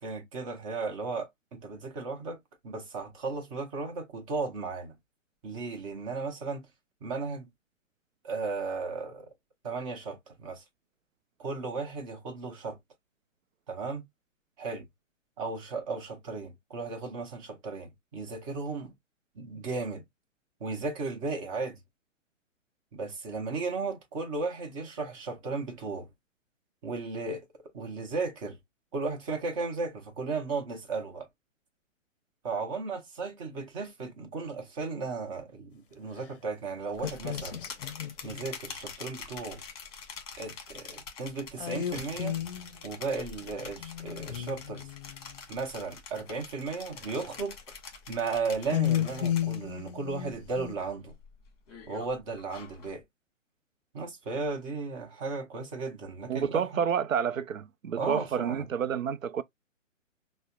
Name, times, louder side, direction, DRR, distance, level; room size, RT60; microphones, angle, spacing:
voice 1, 0.0-2.4 2.6-4.9 5.4-6.7 7.0-7.5 8.2-9.3 9.6-10.6 11.4-12.8 13.7-14.0 14.6-14.9 15.4-18.9 19.3-20.0 20.6-21.8 22.9-26.1 26.8-27.5 27.7-28.6 28.9-31.3 32.4-37.6 38.2-39.6 40.4-42.4 42.8-44.9 45.5-47.6 48.1-51.1 51.9-53.0 53.9-56.9 57.9-58.7, right 4 dB, 25° right, 0.9 m, -35 dB
sound 1, 36.9-49.9 50.2-50.7 51.1-53.0, left 6 dB, 30° left, 1.1 m, -45 dB
sound 2, 37.0-38.5 41.6-42.8 43.8-45.4 48.7-50.8, left 10 dB, 45° left, 0.6 m, -33 dB
voice 2, 56.3-59.4, right 8 dB, 80° right, 0.5 m, -29 dB
5.3 x 2.1 x 2.3 m
figure-of-eight pair, 125°, 39 cm